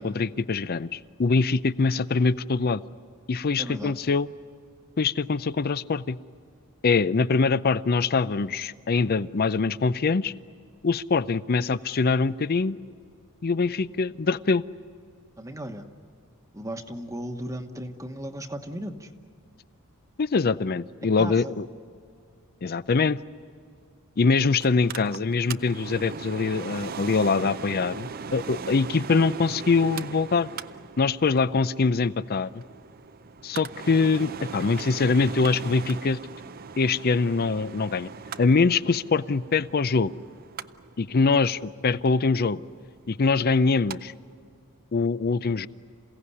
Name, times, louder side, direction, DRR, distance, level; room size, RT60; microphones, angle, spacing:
voice 1, 0.0-2.8 3.3-4.3 5.0-6.2 6.8-10.3 10.8-12.8 13.4-14.6 20.2-21.7 22.6-23.2 24.2-30.5 31.0-32.6 33.4-36.2 36.8-38.1 38.4-40.1 41.0-42.6 43.1-44.1 44.9-45.7, left 4 dB, 45° left, 16 dB, 0.5 m, -23 dB
voice 2, 3.6-3.9 15.4-15.9 16.5-19.1 21.0-21.5, equal, 15° right, 6 dB, 1.2 m, -36 dB
Mechanical fan, 24.6-44.0 44.3-44.4, right 5 dB, 40° right, 0.5 m, -39 dB
28.0 x 17.0 x 9.8 m, 2.3 s
head